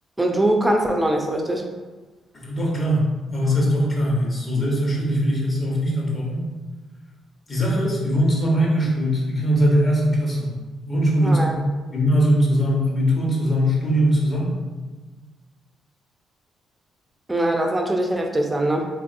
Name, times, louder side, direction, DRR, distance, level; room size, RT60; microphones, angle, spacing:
voice 1, 0.2-1.7 11.2-11.6 17.3-18.9, right 1 dB, 10° right, 2 dB, 0.4 m, -22 dB
voice 2, 2.3-6.4 7.5-10.6 10.9-14.5, equal, 35° left, -3 dB, 0.9 m, -21 dB
3.1 x 2.6 x 2.5 m, 1.3 s
cardioid pair, 90°, 0 cm